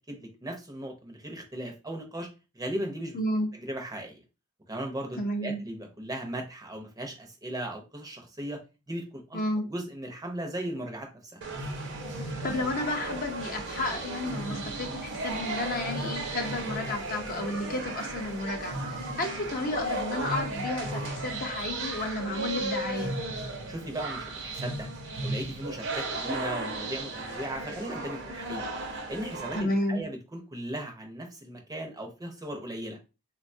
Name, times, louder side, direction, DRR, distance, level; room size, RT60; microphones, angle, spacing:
voice 1, 0.1-2.3 2.5-3.2 3.5-4.2 4.7-8.6 8.9-9.4 9.7-11.4 23.7-24.9 25.2-28.7 29.1-33.0, right 1 dB, 15° right, 3 dB, 0.5 m, -37 dB
voice 2, 3.1-3.5 5.2-5.6 9.3-9.6 12.4-23.1 29.5-30.0, left 1 dB, 40° left, 5 dB, 0.5 m, -32 dB
sound 1, 11.4-29.6, right 2 dB, 55° right, 0.6 m, -35 dB
3.6 x 2.2 x 2.5 m, 0.29 s
head